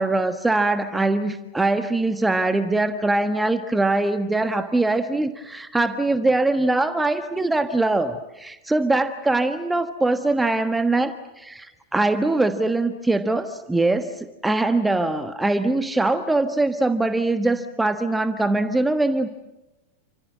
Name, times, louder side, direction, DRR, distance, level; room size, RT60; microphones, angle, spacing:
voice 1, 0.0-19.3, right 2 dB, 5° right, 10 dB, 1.4 m, -22 dB
29.5 x 26.0 x 7.7 m, 1.0 s
figure-of-eight pair, 90°, 0 cm